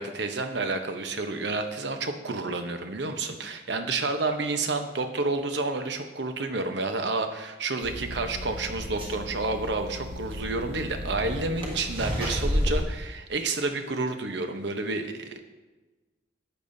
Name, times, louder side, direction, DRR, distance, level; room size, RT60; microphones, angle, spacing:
voice 1, 0.0-15.4, right 3 dB, 70° right, 6 dB, 0.9 m, -30 dB
sound 1, 7.8-12.8, equal, 30° right, 1.7 m, -32 dB
11.5 x 8.8 x 2.7 m, 1.2 s
head